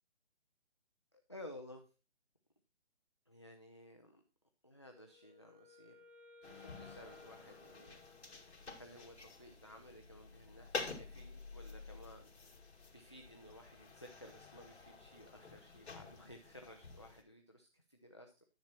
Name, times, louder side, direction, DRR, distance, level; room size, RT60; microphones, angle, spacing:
voice 1, 1.1-1.9 3.3-4.2 4.6-5.9 6.4-8.0 8.8-12.3 12.6-18.4, left 1 dB, 25° left, 3 dB, 0.5 m, -56 dB
Wind instrument woodwind instrument, 4.9-8.8, left 2 dB, 90° right, 4.6 m, -61 dB
sound 1, 6.4-17.2, left 4 dB, 65° left, 2.4 m, -50 dB
10.5 x 7.0 x 4.2 m, 0.31 s
hypercardioid pair, 170°, 35 cm